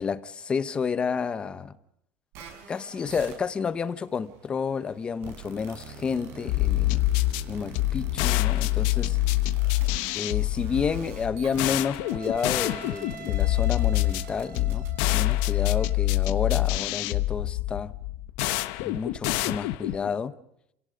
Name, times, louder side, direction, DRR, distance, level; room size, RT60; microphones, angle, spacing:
voice 1, 0.0-1.7 2.7-7.1 7.5-9.2 10.1-17.9 18.8-20.4, left 6 dB, 20° left, 0.9 m, -30 dB
sound 1, 2.3-15.9, right 5 dB, 55° right, 6.3 m, -44 dB
sound 2, 6.5-20.1, left 17 dB, 75° left, 1.1 m, -26 dB
29.0 x 17.5 x 5.1 m
cardioid pair, 170°, 5 cm